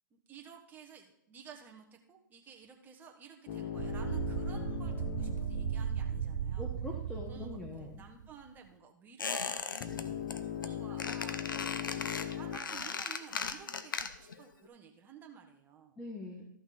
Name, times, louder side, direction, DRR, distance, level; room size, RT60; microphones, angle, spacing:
voice 1, 0.1-6.8 7.3-10.1 10.5-16.0, right 6 dB, 15° right, 3 dB, 1.4 m, -53 dB
sound 1, 3.5-6.8 9.8-12.6, left 9 dB, 35° left, 0.9 m, -40 dB
sound 2, 3.8-8.4, right 8 dB, 60° right, 0.6 m, -36 dB
voice 2, 6.6-8.0 16.0-16.5, left 2 dB, 10° left, 1 dB, 1.1 m, -43 dB
Squeak, 9.2-10.0 10.3-10.7 11.0-14.4 14.7-14.8, left 5 dB, 85° left, 0.8 m, -37 dB
13.5 x 5.9 x 4.2 m, 0.73 s
hypercardioid pair, 140°, 11 cm